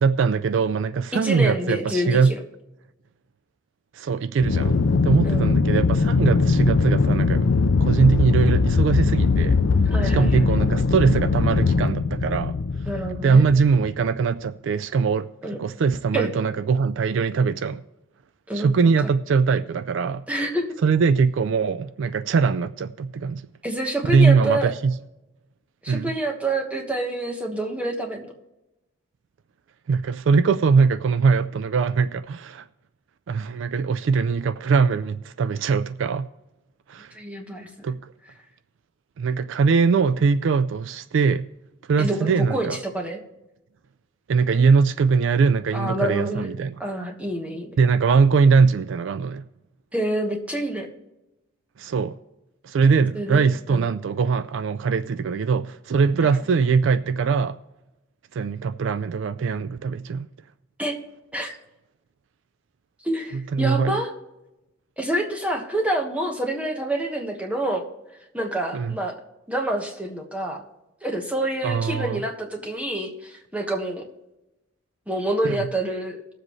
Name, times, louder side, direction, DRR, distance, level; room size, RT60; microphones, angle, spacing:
voice 1, 0.0-2.3 3.9-7.5 7.8-9.6 10.0-12.6 13.2-17.8 18.5-20.2 20.8-23.5 24.1-25.0 25.9-26.1 29.9-32.6 33.3-36.3 36.9-37.1 37.8-38.1 39.2-41.5 41.9-42.8 44.3-46.7 47.8-49.4 51.8-52.2 52.6-57.6 58.3-60.3 63.3-64.0 68.7-68.9 71.6-72.2 75.4-75.6, right 5 dB, 60° right, 0.3 m, -21 dB
voice 2, 1.1-2.4 5.2-5.5 9.9-10.5 12.9-13.4 15.4-15.6 16.1-16.3 18.5-18.7 19.0-19.1 20.3-20.7 23.6-24.7 25.8-28.3 37.1-37.7 42.0-43.2 45.7-46.5 46.8-47.7 49.9-50.9 53.1-53.9 56.2-56.4 60.8-61.0 61.3-61.6 63.0-64.1 65.0-67.8 68.3-69.2 69.5-70.6 71.0-74.1 75.1-76.2, right 1 dB, 5° right, 1.3 m, -27 dB
Aircraft, 4.4-13.9, left 4 dB, 65° left, 0.5 m, -21 dB
19.5 x 7.5 x 3.1 m
head